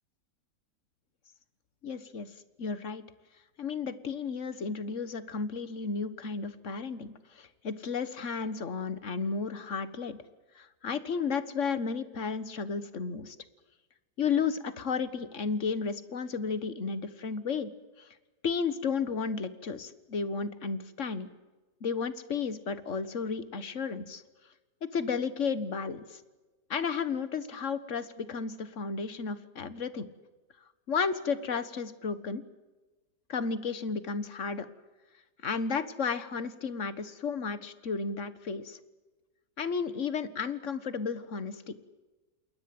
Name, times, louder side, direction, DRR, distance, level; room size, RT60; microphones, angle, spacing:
voice 1, 1.8-2.3 2.6-3.1 3.6-10.2 10.6-13.4 14.2-17.7 18.0-18.1 18.4-21.3 21.8-24.2 24.9-26.2 26.7-30.1 30.9-32.4 33.3-34.7 35.4-38.8 39.6-41.7, left 5 dB, 45° left, 14 dB, 1.7 m, -33 dB
28.5 x 21.5 x 7.9 m, 1.2 s
omnidirectional pair, 1.8 m